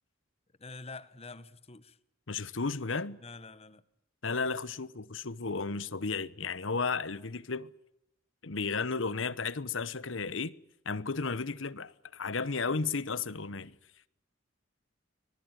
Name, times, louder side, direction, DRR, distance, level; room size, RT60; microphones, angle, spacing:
voice 1, 0.6-2.0 3.2-3.8, left 3 dB, 30° left, 1.3 m, -46 dB
voice 2, 2.3-3.2 4.2-7.7 8.4-10.5 10.8-13.7, left 4 dB, 70° left, 1.0 m, -33 dB
26.0 x 20.0 x 9.3 m
head